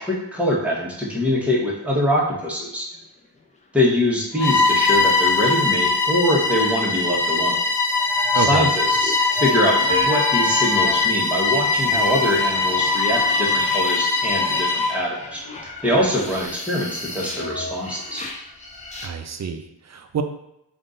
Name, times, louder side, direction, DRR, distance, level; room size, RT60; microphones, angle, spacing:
voice 1, 0.0-2.9 3.7-7.6 8.3-15.4 15.8-18.2, left 1 dB, 5° right, -5 dB, 1.2 m, -23 dB
sound 1, 2.9-3.4 3.6-3.7 4.0-5.8 7.8-19.1, left 4 dB, 15° left, 0.7 m, -32 dB
Bowed string instrument, 4.3-15.0, left 3 dB, 75° left, 0.8 m, -21 dB
voice 2, 8.3-8.7 19.0-20.2, right 6 dB, 45° right, 7 dB, 0.4 m, -27 dB
3.5 x 2.6 x 3.8 m, 0.85 s
cardioid pair, 60°, 41 cm